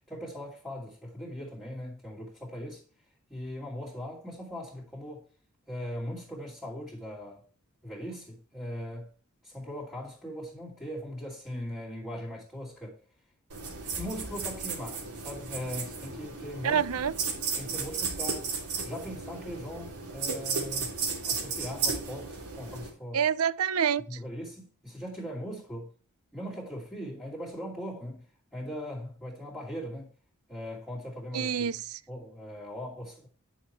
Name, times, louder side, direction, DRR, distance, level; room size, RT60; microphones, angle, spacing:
voice 1, 0.1-2.8 3.3-5.3 5.7-7.4 7.8-9.1 9.4-13.0 14.0-17.0 17.6-18.5 18.8-20.9 21.2-23.2 24.1-25.9 26.3-28.2 28.5-30.1 30.5-31.7 32.1-33.3, equal, 5° left, 2.7 m, -39 dB
sound 1, 13.5-22.9, right 5 dB, 85° right, 3.2 m, -34 dB
voice 2, 16.6-17.1 23.1-24.2 31.3-32.0, right 8 dB, 70° right, 0.5 m, -27 dB
10.0 x 5.8 x 4.5 m
head